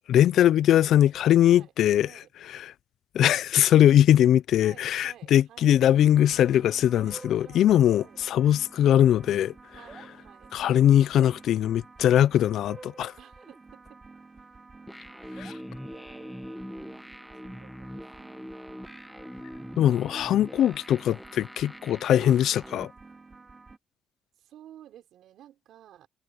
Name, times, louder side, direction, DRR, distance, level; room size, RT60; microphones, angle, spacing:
voice 1, 0.1-2.1 2.5-2.7 3.1-9.5 10.5-13.1 15.4-15.5 19.8-22.9, left 11 dB, 75° left, 0.4 m, -21 dB
voice 2, 4.6-5.8 6.9-8.2 9.7-10.5 13.2-14.0 15.2-15.5 15.8-17.0 17.4-18.3 22.2-22.4 24.4-26.1, right 11 dB, 80° right, 5.7 m, -53 dB
sound 1, 6.0-23.8, right 3 dB, 30° right, 4.4 m, -50 dB
sound 2, 14.9-22.8, equal, ahead, 0.9 m, -43 dB
cardioid pair, 90°, 0 cm